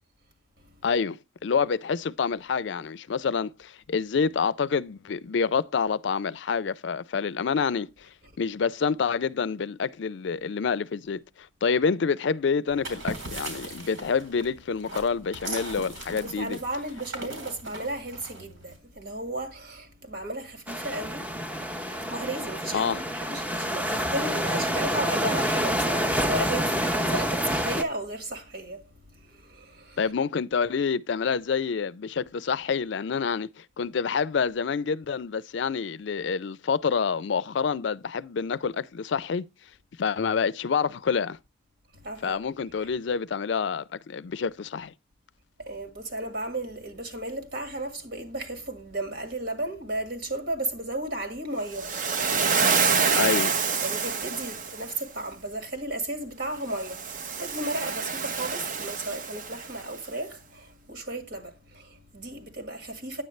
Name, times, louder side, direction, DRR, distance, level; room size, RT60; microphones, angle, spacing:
voice 1, 0.8-8.1 8.4-16.6 22.7-23.0 30.0-39.5 40.0-41.4 42.2-44.9 53.2-53.6, left 5 dB, 65° left, 0.4 m, -27 dB
sound 1, 12.7-18.8, right 2 dB, 90° right, 3.8 m, -39 dB
voice 2, 16.1-30.0 41.9-42.4 45.6-53.2 53.8-63.2, right 1 dB, 70° right, 1.9 m, -35 dB
sound 2, 20.7-27.8, equal, 5° right, 0.6 m, -27 dB
Waves surf, 51.7-54.9 56.7-59.8, right 5 dB, 45° right, 0.7 m, -27 dB
9.7 x 7.8 x 3.1 m
head